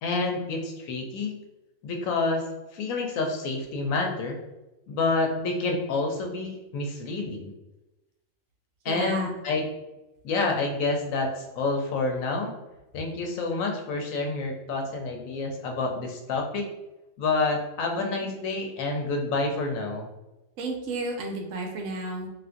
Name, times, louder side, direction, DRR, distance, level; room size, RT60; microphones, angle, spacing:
voice 1, 0.0-1.4 1.8-2.4 2.7-4.4 4.9-7.5 8.8-9.6 10.2-12.5 12.9-16.6 17.2-20.1, left 3 dB, 85° left, 3 dB, 1.0 m, -28 dB
voice 2, 8.9-9.3 20.6-22.3, right 2 dB, 80° right, 2 dB, 1.0 m, -32 dB
3.3 x 2.4 x 2.5 m, 0.99 s
omnidirectional pair, 1.4 m